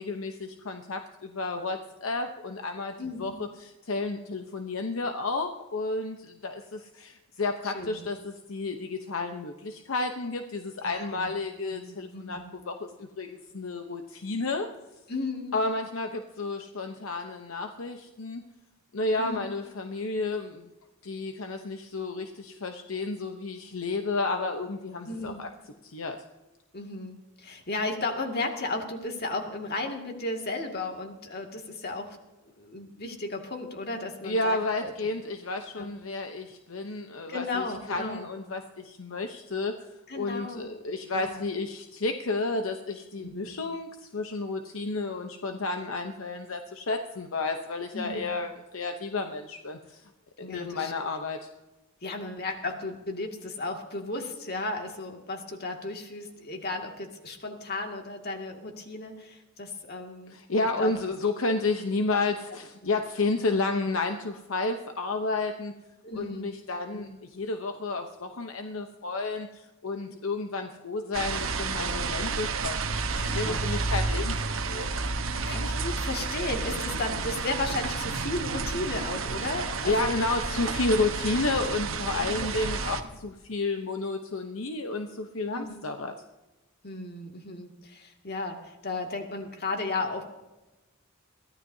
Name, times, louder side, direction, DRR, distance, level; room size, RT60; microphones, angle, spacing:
voice 1, 0.0-12.4 12.7-14.7 15.5-18.4 18.9-20.7 21.0-25.5 25.8-26.2 34.2-39.7 40.1-50.0 50.4-51.5 60.3-65.7 66.1-73.0 73.3-74.9 79.8-86.1, left 3 dB, 75° left, 5 dB, 0.9 m, -31 dB
voice 2, 3.0-3.4 7.6-8.0 10.8-11.3 11.7-12.5 15.1-15.6 19.2-19.4 25.1-25.4 26.7-32.2 32.6-34.9 35.8-35.9 37.3-38.3 40.1-40.6 41.1-41.5 43.2-43.6 47.9-48.4 50.4-50.9 52.0-60.4 60.8-60.9 62.8-62.9 66.0-66.5 66.9-67.2 73.1-73.6 75.5-80.1 82.2-82.5 85.5-85.8 86.8-90.2, left 2 dB, 50° left, 3 dB, 2.2 m, -35 dB
sound 1, 71.1-83.0, right 4 dB, 80° right, 1.1 m, -31 dB
23.0 x 15.0 x 2.8 m, 1.1 s
head